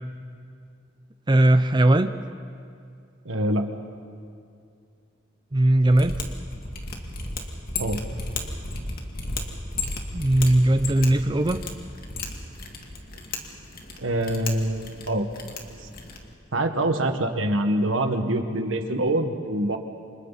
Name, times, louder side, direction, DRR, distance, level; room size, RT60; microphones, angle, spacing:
voice 1, 1.3-2.1 5.5-6.2 10.1-11.6, right 1 dB, 25° right, 9 dB, 0.6 m, -19 dB
voice 2, 3.2-3.7 7.8-8.0 14.0-15.3 16.5-19.8, right 1 dB, 90° right, 5 dB, 1.7 m, -25 dB
Mechanisms, 5.8-16.3, left 2 dB, 50° left, 2.2 m, -34 dB
29.5 x 26.5 x 4.2 m, 2.3 s
head